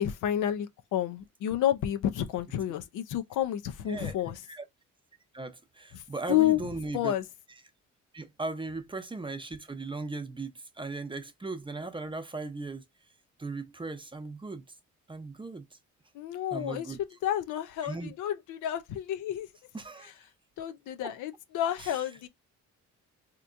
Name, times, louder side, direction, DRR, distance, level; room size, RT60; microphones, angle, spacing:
voice 1, 0.0-4.4 5.9-6.0 6.3-7.2 16.1-19.5 20.0-20.1 20.6-22.3, left 11 dB, 85° left, 0.6 m, -30 dB
voice 2, 5.3-7.1 8.1-12.8 13.4-14.6 15.1-15.6 16.5-17.0 17.8-18.1 19.7-20.1 21.0-21.1 21.8-21.9, right 3 dB, 15° right, 0.7 m, -37 dB
3.4 x 3.0 x 2.5 m
cardioid pair, 90°, 30 cm